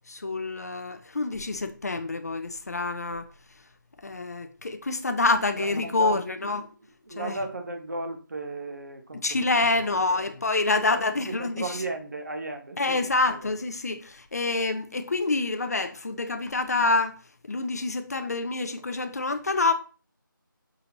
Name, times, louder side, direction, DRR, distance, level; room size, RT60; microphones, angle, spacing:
voice 1, 0.1-3.2 4.0-6.7 7.2-7.4 9.1-11.8 12.8-17.2 17.5-19.7, left 3 dB, 45° left, 0.5 m, -27 dB
voice 2, 5.6-6.5 7.1-9.2 9.5-10.3 10.7-13.5, right 3 dB, 50° right, 0.7 m, -36 dB
5.6 x 2.7 x 2.8 m
figure-of-eight pair, 170°, 12 cm